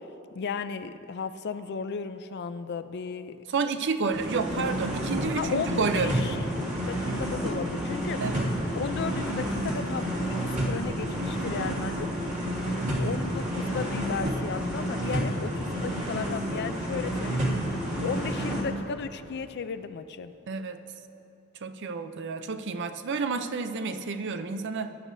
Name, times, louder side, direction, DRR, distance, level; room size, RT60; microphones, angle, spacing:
voice 1, 0.3-3.4 5.4-6.4 6.9-8.2 8.7-12.1 13.0-17.4 18.0-20.3, left 5 dB, 50° left, 12 dB, 0.4 m, -35 dB
voice 2, 3.5-6.1 8.2-8.5 20.5-20.8 21.6-24.9, right 4 dB, 55° right, 9 dB, 0.5 m, -30 dB
sound 1, 4.1-18.6, equal, 35° right, 2.9 m, -30 dB
20.0 x 11.0 x 2.7 m, 2.8 s
head